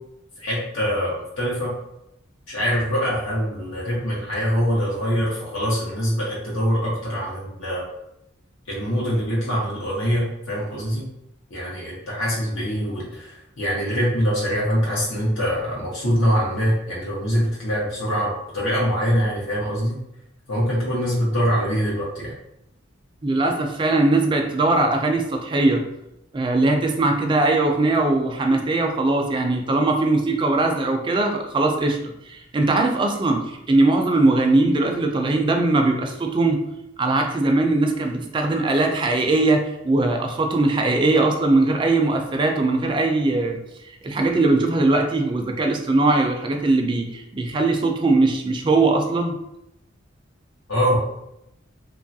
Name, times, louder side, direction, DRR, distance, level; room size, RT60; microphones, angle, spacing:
voice 1, 0.4-1.7 2.5-7.9 8.7-11.1 11.5-20.0 20.5-22.3 50.7-51.0, equal, 90° left, -6 dB, 0.8 m, -24 dB
voice 2, 23.2-25.8 26.3-32.0 32.3-36.7 37.0-43.6 44.0-49.4, right 2 dB, 25° right, 3 dB, 0.3 m, -20 dB
2.9 x 2.3 x 2.6 m, 0.83 s
head